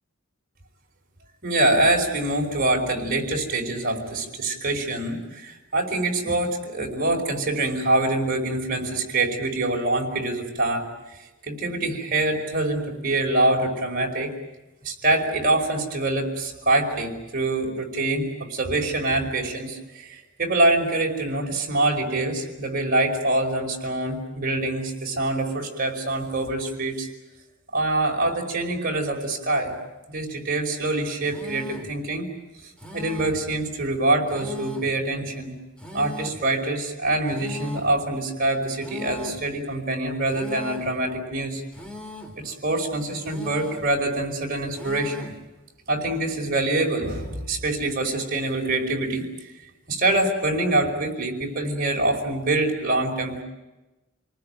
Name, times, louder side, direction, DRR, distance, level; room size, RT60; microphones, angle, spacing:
voice 1, 1.4-14.3 14.8-27.1 27.7-29.7 30.1-32.3 32.9-35.5 35.9-41.6 42.4-45.3 45.9-49.3 49.9-53.4, right 2 dB, 45° right, 1 dB, 5.2 m, -25 dB
sound 1, 31.3-32.0 32.8-33.5 34.3-35.0 35.8-36.5 37.3-38.0 38.8-39.5 40.3-41.0 41.7-42.4 43.2-43.9 44.7-45.4, left 1 dB, 5° left, 3.0 m, -39 dB
29.0 x 19.5 x 9.1 m, 1.1 s
head